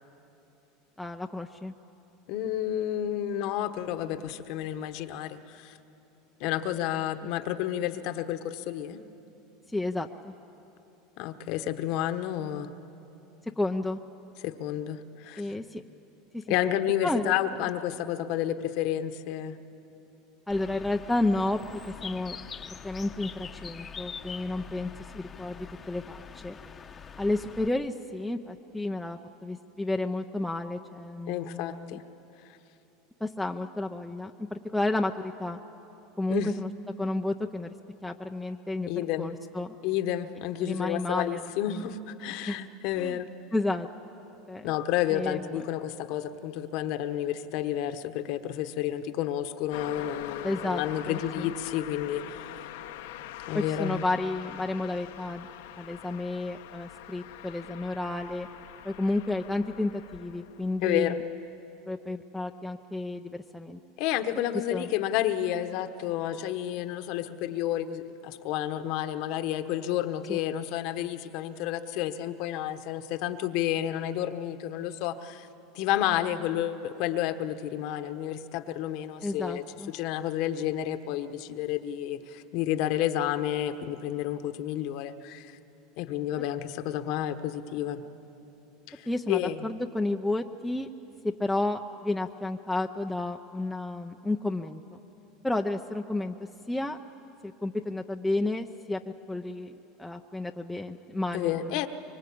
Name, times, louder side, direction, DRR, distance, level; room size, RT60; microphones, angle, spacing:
voice 1, 1.0-1.7 9.7-10.3 13.6-14.0 15.4-15.8 16.3-16.4 17.0-17.3 20.5-22.4 22.8-26.5 27.2-32.0 33.2-35.6 36.2-36.7 37.0-37.7 38.0-38.9 39.2-39.7 40.6-41.9 42.4-42.6 43.0-43.2 43.5-43.9 44.5-44.7 45.1-45.6 50.4-51.5 53.5-55.5 55.8-58.5 58.8-61.2 61.9-63.8 64.7-64.9 70.3-70.4 79.2-79.9 89.1-90.9 91.2-95.0 95.4-96.3 96.7-97.0 97.4-99.0 99.3-101.9, left 2 dB, 5° left, 2 dB, 0.6 m, -31 dB
voice 2, 2.3-5.8 6.4-9.0 11.2-12.7 14.4-15.5 16.5-19.6 31.3-32.0 36.3-36.5 38.9-39.3 39.8-43.3 44.6-52.6 53.5-54.0 60.8-61.2 64.0-75.5 75.7-85.6 86.0-88.0 88.9-89.7 101.3-101.9, left 11 dB, 60° left, 9 dB, 1.2 m, -30 dB
Bird, 20.5-27.7, left 6 dB, 25° left, 0.9 m, -44 dB
Car passing by, 49.7-61.2, left 12 dB, 85° left, 1.0 m, -43 dB
24.0 x 24.0 x 8.6 m, 3.0 s
supercardioid pair, 120°, 0 cm